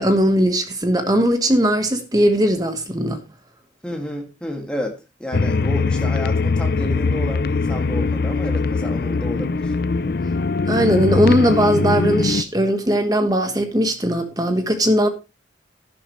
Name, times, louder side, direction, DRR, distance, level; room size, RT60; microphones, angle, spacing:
voice 1, 0.0-3.2 10.7-15.1, equal, 20° right, 1.3 m, -19 dB
voice 2, 3.8-9.7, equal, 5° left, 2.1 m, -31 dB
sound 1, 5.3-12.4, left 4 dB, 50° left, 0.5 m, -21 dB
11.5 x 11.0 x 3.1 m
head